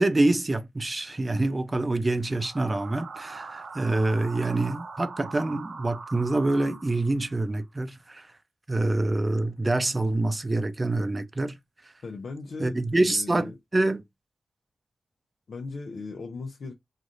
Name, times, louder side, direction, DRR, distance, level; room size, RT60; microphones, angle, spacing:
voice 1, 0.0-8.3 8.7-11.6 12.6-14.0, right 2 dB, 35° right, 0.6 m, -26 dB
sound 1, 2.2-7.3, right 4 dB, 75° right, 0.6 m, -42 dB
voice 2, 12.0-13.5 15.5-16.7, left 4 dB, 70° left, 0.7 m, -37 dB
3.2 x 2.5 x 2.6 m
cardioid pair, 45°, 0 cm